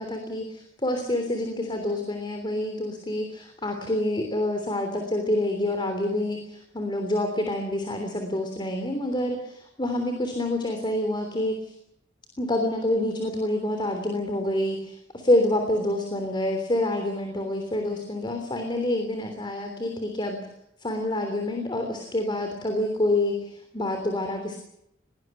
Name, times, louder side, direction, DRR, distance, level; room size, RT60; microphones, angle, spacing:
voice 1, 0.0-11.7 12.4-20.4 20.8-24.6, left 1 dB, 25° left, 5 dB, 3.3 m, -27 dB
22.0 x 18.5 x 7.8 m, 0.79 s
head